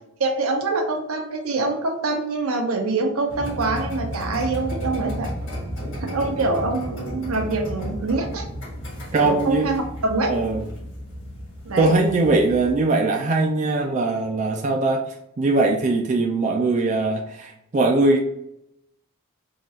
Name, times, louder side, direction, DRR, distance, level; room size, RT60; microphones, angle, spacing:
voice 1, 0.2-5.3 6.0-8.5 9.2-10.3 11.6-11.9, right 3 dB, 75° right, 3 dB, 0.7 m, -25 dB
sound 1, 3.3-12.7, equal, 60° left, 1.5 m, -33 dB
voice 2, 9.1-9.7 10.3-10.6 11.8-18.2, right 3 dB, 35° right, 1 dB, 0.3 m, -21 dB
3.7 x 2.4 x 4.1 m, 0.77 s
head